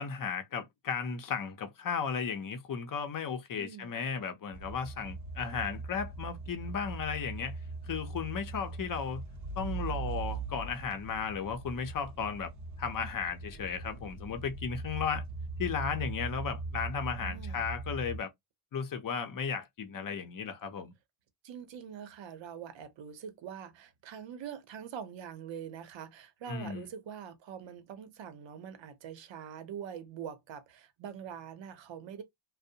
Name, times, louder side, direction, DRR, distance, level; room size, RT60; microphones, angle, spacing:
voice 1, 0.0-7.6 7.8-9.2 9.6-12.5 12.8-15.2 15.6-18.3 18.7-20.9 26.5-26.9, left 6 dB, 45° left, 0.6 m, -35 dB
voice 2, 3.6-4.2 17.1-17.6 21.4-32.2, right 8 dB, 75° right, 0.7 m, -44 dB
sound 1, 4.5-18.2, right 3 dB, 40° right, 0.6 m, -40 dB
2.6 x 2.0 x 2.7 m
cardioid pair, 120°, 46 cm